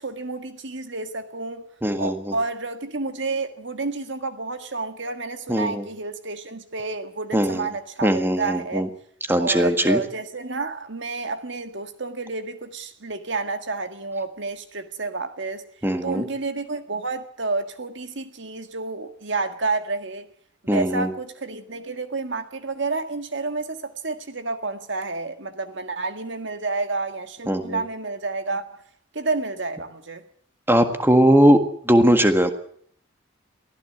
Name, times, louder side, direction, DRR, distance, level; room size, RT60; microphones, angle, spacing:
voice 1, 0.0-1.6 2.0-8.9 9.4-15.6 16.0-20.3 20.6-28.8 29.1-30.2, right 3 dB, 60° right, 1.7 m, -30 dB
voice 2, 1.8-2.3 5.5-5.8 7.3-7.7 8.0-8.9 9.3-10.0 15.8-16.2 20.7-21.1 27.5-27.8 30.7-31.6 31.8-32.5, equal, 10° right, 1.6 m, -19 dB
23.5 x 15.5 x 7.9 m
head